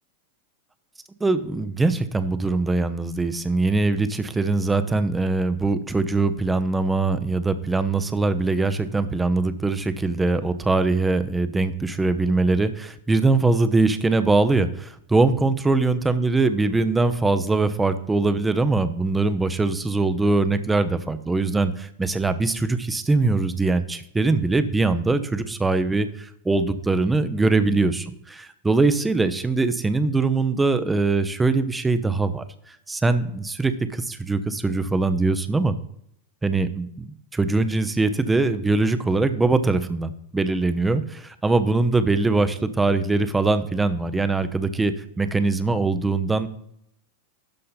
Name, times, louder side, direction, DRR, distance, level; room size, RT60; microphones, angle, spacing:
voice 1, 1.2-32.4 32.9-35.7 36.4-36.9 37.4-46.5, right 3 dB, 10° right, 12 dB, 0.8 m, -22 dB
12.0 x 5.4 x 4.1 m, 0.74 s
figure-of-eight pair, 90°, 0 cm